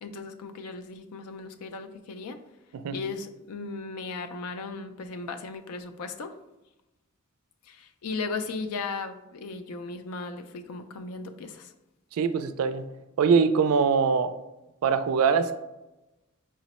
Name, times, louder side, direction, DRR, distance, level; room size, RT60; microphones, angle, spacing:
voice 1, 0.0-2.4 2.9-6.3 7.7-11.7, left 4 dB, 80° left, 9 dB, 0.4 m, -36 dB
voice 2, 12.2-12.8 13.2-14.3 14.8-15.5, right 5 dB, 70° right, 10 dB, 0.3 m, -23 dB
4.9 x 2.0 x 4.1 m, 1.0 s
head